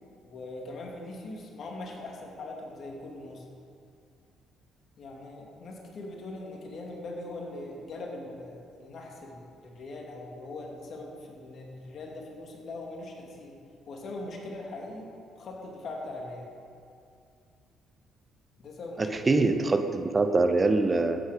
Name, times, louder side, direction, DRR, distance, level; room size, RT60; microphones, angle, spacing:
voice 1, 0.2-3.5 5.0-13.5 13.9-15.1 15.4-16.5 18.6-19.3, left 2 dB, 55° left, 0 dB, 2.5 m, -41 dB
voice 2, 19.0-21.2, right 3 dB, 30° right, 8 dB, 0.9 m, -24 dB
14.0 x 9.5 x 5.2 m, 2.4 s
hypercardioid pair, 50°, 0 cm